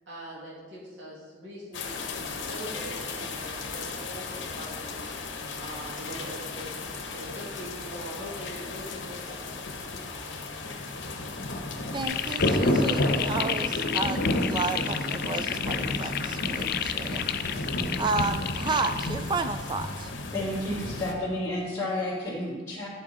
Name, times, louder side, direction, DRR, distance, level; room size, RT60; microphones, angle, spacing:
voice 1, 0.1-5.1 5.6-9.5, equal, 75° right, -5 dB, 2.2 m, -42 dB
sound 1, 1.7-21.1, left 1 dB, 70° left, 1.0 m, -32 dB
voice 2, 11.9-17.2 17.5-20.1, right 3 dB, 25° right, 9 dB, 0.3 m, -32 dB
sound 2, 12.0-19.1, left 11 dB, 50° left, 0.4 m, -32 dB
voice 3, 20.3-22.9, left 1 dB, 15° left, -11 dB, 2.3 m, -31 dB
11.5 x 5.7 x 4.2 m, 1.4 s
head